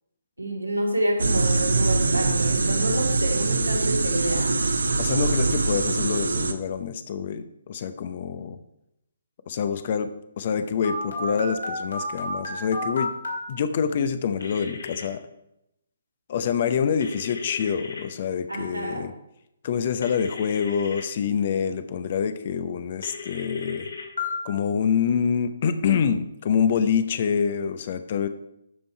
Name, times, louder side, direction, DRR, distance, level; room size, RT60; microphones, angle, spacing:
voice 1, 0.4-4.5 18.5-19.0, right 1 dB, 85° right, 0 dB, 2.4 m, -28 dB
sound 1, 1.2-6.5, right 3 dB, 70° right, 0.9 m, -23 dB
voice 2, 5.0-8.6 9.5-10.1 10.4-13.1 13.5-15.2 16.3-19.1 19.6-23.9 24.4-28.3, left 7 dB, 40° left, 11 dB, 0.8 m, -26 dB
Telephone, 10.8-13.4 14.4-15.0 17.0-18.0 20.0-21.0 23.0-24.3, left 3 dB, 70° left, 2.6 m, -33 dB
11.5 x 5.4 x 4.5 m, 0.83 s
figure-of-eight pair, 135°, 0 cm